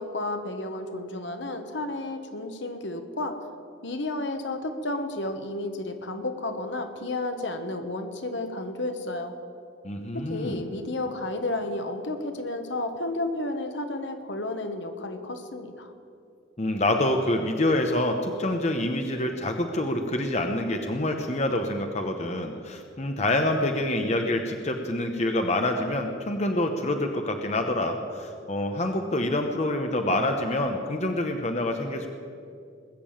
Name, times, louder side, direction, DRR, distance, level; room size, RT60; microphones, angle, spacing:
voice 1, 0.0-3.4 3.8-9.3 10.1-15.9, left 2 dB, 65° left, 7 dB, 1.3 m, -32 dB
voice 2, 9.8-10.6 16.6-32.1, left 1 dB, 35° left, 4 dB, 0.9 m, -26 dB
20.5 x 6.9 x 8.8 m, 2.4 s
head